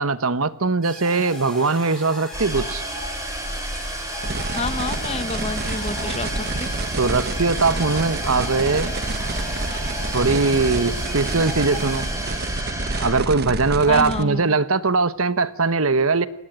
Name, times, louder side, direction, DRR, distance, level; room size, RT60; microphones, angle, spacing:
voice 1, 0.0-2.8 7.0-8.9 10.1-12.1 13.0-16.3, right 4 dB, 70° right, 1.1 m, -21 dB
sound 1, 0.8-12.6, left 2 dB, ahead, 7.7 m, -39 dB
sound 2, 2.3-13.8, right 1 dB, 15° right, 5.6 m, -30 dB
sound 3, 4.2-14.2, right 2 dB, 50° right, 1.1 m, -29 dB
voice 2, 4.5-6.7 13.9-14.6, left 3 dB, 30° left, 1.4 m, -29 dB
28.0 x 20.5 x 8.9 m
head